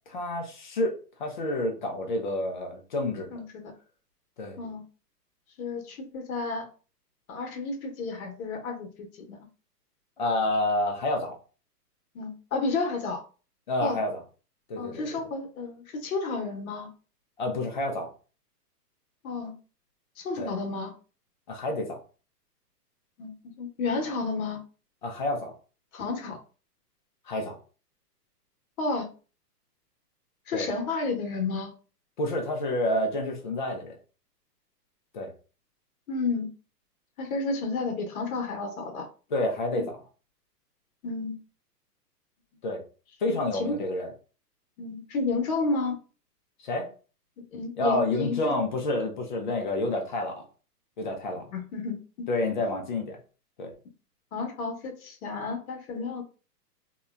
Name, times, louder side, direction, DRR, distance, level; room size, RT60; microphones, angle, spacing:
voice 1, 0.1-0.9 1.2-3.4 4.4-4.6 10.2-11.3 13.7-14.2 14.7-15.2 17.4-18.1 20.4-20.5 21.5-22.0 25.0-25.5 27.3-27.6 30.5-30.7 32.2-34.0 35.1-35.3 39.3-40.0 42.6-42.8 43.2-44.1 46.6-46.9 47.8-50.4 51.0-51.5 52.3-53.2 53.6-53.7, left 1 dB, 30° left, 3 dB, 0.4 m, -29 dB
voice 2, 5.6-6.7 7.3-9.4 12.1-13.2 13.8-14.0 14.8-16.9 19.2-19.5 20.2-20.9 23.2-24.6 25.9-26.4 28.8-29.1 30.5-31.7 36.1-36.5 37.2-39.1 39.7-39.9 41.0-41.4 43.3-43.8 44.8-46.0 47.4-48.6 51.5-52.3 54.3-56.2, left 3 dB, 60° left, 3 dB, 0.9 m, -31 dB
2.8 x 2.1 x 2.3 m, 0.36 s
hypercardioid pair, 135°, 49 cm